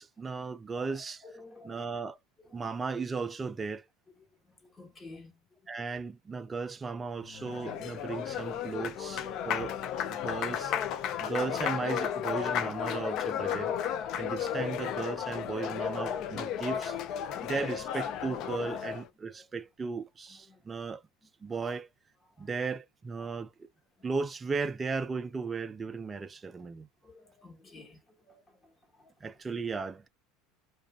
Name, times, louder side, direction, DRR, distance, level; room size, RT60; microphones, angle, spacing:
voice 1, 0.0-1.2 1.6-2.2 2.5-3.8 5.7-9.8 10.1-10.8 11.2-13.7 14.2-16.9 17.4-21.0 21.4-21.9 22.4-23.5 24.0-26.9 29.2-30.1, right 4 dB, 20° right, 0.3 m, -36 dB
voice 2, 0.7-2.0 2.4-2.7 4.1-6.0 7.5-7.6 8.0-8.3 8.8-8.9 9.4-10.3 19.2-19.5 20.3-20.9 21.5-21.7 22.2-22.6 23.2-23.4 24.0-24.1 27.0-29.1 29.5-29.7, left 2 dB, 20° left, 1.0 m, -55 dB
Applause, 7.2-19.1, left 9 dB, 55° left, 0.4 m, -33 dB
2.4 x 2.3 x 2.3 m
supercardioid pair, 120°, 0 cm